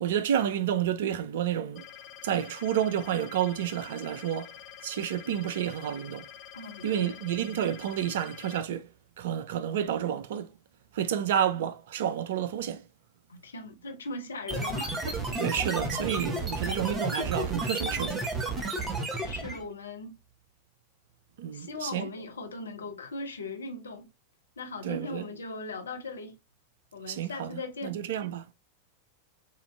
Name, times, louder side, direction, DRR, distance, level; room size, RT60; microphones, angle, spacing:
voice 1, 0.0-1.8 2.2-4.5 4.8-6.3 6.8-8.9 9.2-10.5 10.9-12.8 15.4-18.3 21.4-22.1 24.8-25.2 27.1-28.5, right 10 dB, 55° right, 0.4 m, -30 dB
sound 1, 1.8-8.6, left 11 dB, 40° left, 0.8 m, -47 dB
voice 2, 6.5-7.2 13.3-15.5 19.2-20.1 21.5-24.1 24.6-26.3 26.9-28.0, left 3 dB, 70° left, 0.8 m, -39 dB
sound 2, 14.5-19.6, right 2 dB, 20° right, 1.0 m, -32 dB
6.7 x 2.5 x 2.3 m
figure-of-eight pair, 90°, 0 cm